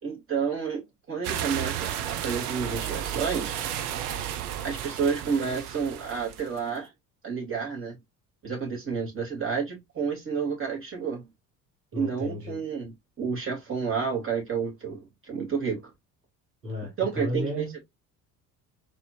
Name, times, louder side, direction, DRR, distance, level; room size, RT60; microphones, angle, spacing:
voice 1, 0.0-3.8 4.6-6.9 7.2-8.0 8.4-11.3 11.9-15.9 17.0-17.7, right 6 dB, 25° right, 2.5 m, -30 dB
sound 1, 1.2-6.6, right 10 dB, 70° right, 0.7 m, -33 dB
voice 2, 11.9-12.6 16.6-17.8, left 1 dB, 85° right, 1.4 m, -33 dB
4.1 x 3.0 x 2.4 m
figure-of-eight pair, 55°, 47 cm